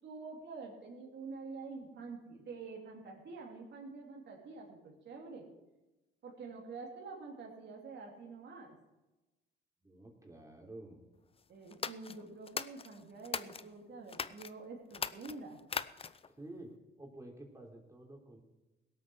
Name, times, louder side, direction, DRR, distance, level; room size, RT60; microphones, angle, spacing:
voice 1, 0.0-5.5 6.2-8.8 11.5-15.6, right 4 dB, 60° right, -1 dB, 2.8 m, -47 dB
voice 2, 9.8-11.0 16.3-18.4, right 1 dB, 15° right, 0 dB, 3.5 m, -50 dB
sound 1, 11.7-13.7 14.1-14.5 14.9-16.3, left 5 dB, 30° left, 0.6 m, -40 dB
18.0 x 8.4 x 6.3 m, 1.0 s
cardioid pair, 90°, 20 cm